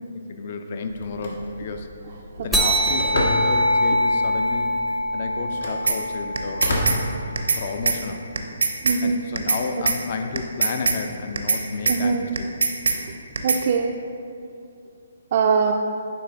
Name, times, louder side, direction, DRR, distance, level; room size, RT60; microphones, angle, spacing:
voice 1, 0.0-1.9 2.4-4.7 5.1-8.3 9.0-12.7, left 4 dB, 45° left, 6 dB, 0.5 m, -32 dB
Telephone, 0.9-7.9, equal, 75° left, 1.2 m, -31 dB
sound 1, 2.5-7.4, equal, ahead, 0.6 m, -23 dB
sound 2, 5.9-6.0 6.4-7.0 7.4-7.6 7.9-8.0 8.4-9.0 9.4-9.6 9.9-10.0 10.4-11.0 11.4-11.6 11.9-12.0 12.4-13.0 13.4-13.6, right 4 dB, 80° right, 0.6 m, -21 dB
voice 2, 8.8-9.2 11.9-12.3 13.4-14.0 15.3-15.7, right 5 dB, 45° right, 1 dB, 0.3 m, -22 dB
9.3 x 3.4 x 3.5 m, 2.5 s
hypercardioid pair, 150°, 0 cm